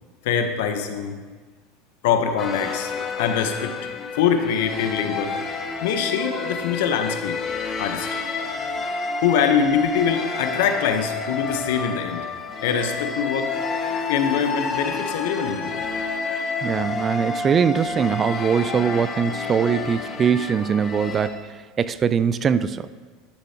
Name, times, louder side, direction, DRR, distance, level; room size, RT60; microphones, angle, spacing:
voice 1, 0.2-1.2 2.0-2.9 3.2-3.8 4.1-5.4 5.8-7.4 7.8-8.2 9.2-12.3 12.6-13.6 14.1-15.9, left 7 dB, 75° left, 7 dB, 0.8 m, -23 dB
sound 1, 2.4-21.3, left 4 dB, 35° left, 0.9 m, -29 dB
voice 2, 16.6-21.4 21.8-22.9, right 7 dB, 35° right, 15 dB, 0.3 m, -22 dB
11.5 x 6.9 x 2.8 m, 1.5 s
hypercardioid pair, 90°, 0 cm